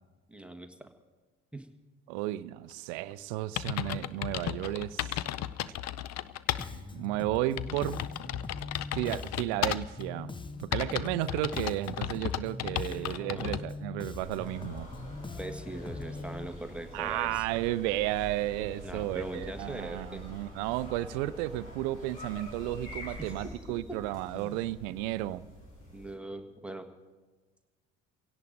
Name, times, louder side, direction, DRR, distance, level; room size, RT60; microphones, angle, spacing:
voice 1, 0.3-0.9 1.5-1.7 12.9-13.6 15.4-17.4 18.8-20.2 23.2-24.0 24.3-24.6 25.9-26.9, right 1 dB, 5° right, 5 dB, 1.3 m, -41 dB
voice 2, 2.1-5.2 6.7-8.0 8.9-10.3 10.6-14.9 16.9-25.5, right 15 dB, 65° right, 18 dB, 0.6 m, -33 dB
sound 1, 3.1-3.2 3.6-6.7 7.1-7.2 7.6-10.0 10.7-13.6, left 12 dB, 45° left, 0.6 m, -34 dB
Bass guitar, 6.6-16.5, left 3 dB, 15° left, 0.8 m, -42 dB
sound 2, 14.2-26.1, equal, 75° left, 6.5 m, -46 dB
29.5 x 17.0 x 2.6 m, 1.3 s
figure-of-eight pair, 50°, 37 cm